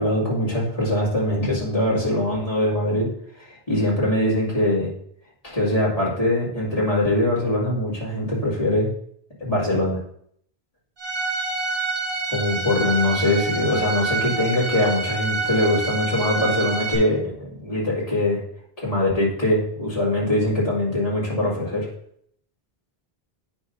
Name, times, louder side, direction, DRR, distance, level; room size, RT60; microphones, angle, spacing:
voice 1, 0.0-3.1 3.4-4.9 5.4-8.9 9.4-10.0 12.3-18.4 18.8-21.9, left 1 dB, 35° left, -7 dB, 2.4 m, -22 dB
Bowed string instrument, 11.0-17.0, right 3 dB, 60° right, 1.5 m, -27 dB
9.0 x 5.5 x 2.6 m, 0.67 s
omnidirectional pair, 1.0 m